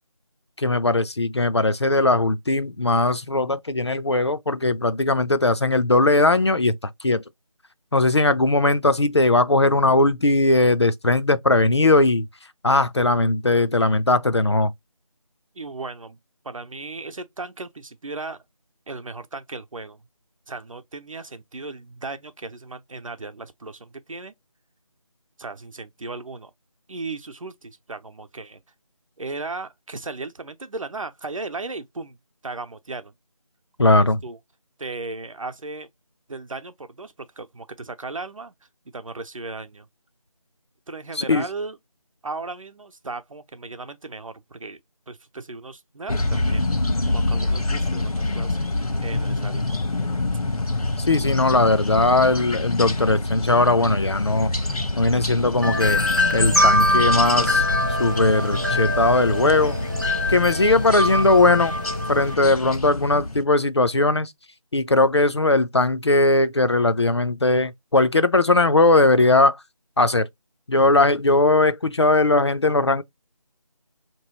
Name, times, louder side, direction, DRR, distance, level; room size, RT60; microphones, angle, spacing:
voice 1, 0.6-7.2 7.9-12.3 12.6-14.7 33.8-34.2 41.1-41.5 51.0-54.5 55.0-56.0 56.3-57.6 57.9-59.8 60.3-61.7 62.1-64.3 64.7-69.6 70.0-70.3 70.7-73.0, left 2 dB, 50° left, 0.4 m, -19 dB
voice 2, 15.5-16.2 16.4-18.4 18.9-20.0 20.5-24.3 25.4-26.5 26.9-28.6 29.2-32.2 32.4-33.1 33.8-34.4 34.8-35.9 36.3-38.5 38.9-39.9 40.9-41.8 42.2-44.8 45.1-46.7 47.1-48.6 49.0-49.7, right 3 dB, 65° right, 0.7 m, -36 dB
sound 1, 46.1-63.4, left 2 dB, 85° left, 1.1 m, -26 dB
Wind chime, 55.6-62.3, equal, 35° right, 0.3 m, -24 dB
3.8 x 3.0 x 2.9 m
figure-of-eight pair, 175°, 19 cm